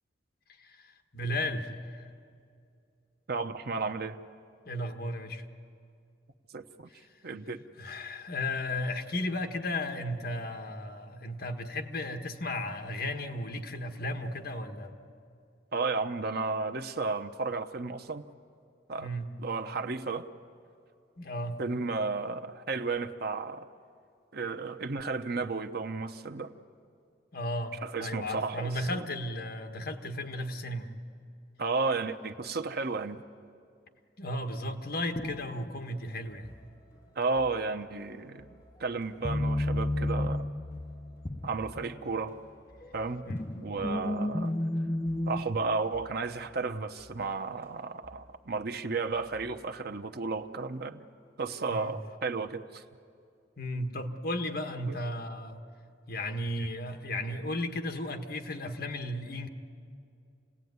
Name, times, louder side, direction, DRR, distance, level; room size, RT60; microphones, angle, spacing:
voice 1, 0.6-2.1 4.6-5.4 6.9-7.1 7.8-15.0 19.0-19.4 21.2-21.6 27.3-30.9 34.2-36.5 43.2-43.3 51.7-51.9 53.6-55.6 56.1-59.5, left 1 dB, 60° left, 5 dB, 1.5 m, -35 dB
voice 2, 3.3-4.2 6.5-6.9 7.2-7.6 15.7-18.2 18.9-19.1 19.4-20.3 21.6-23.7 24.3-26.5 27.8-29.0 31.6-33.2 37.2-38.5 38.8-40.4 41.4-42.4 42.9-43.2 43.6-44.5 45.3-51.0 51.4-52.8 54.9-55.0 56.6-56.7, right 4 dB, 60° right, 7 dB, 0.9 m, -33 dB
sound 1, 35.1-49.8, equal, 10° right, 6.1 m, -58 dB
sound 2, 35.2-35.8 39.2-42.3 42.8-45.5, left 1 dB, 20° left, 0.5 m, -32 dB
28.0 x 17.5 x 9.5 m, 2.5 s
head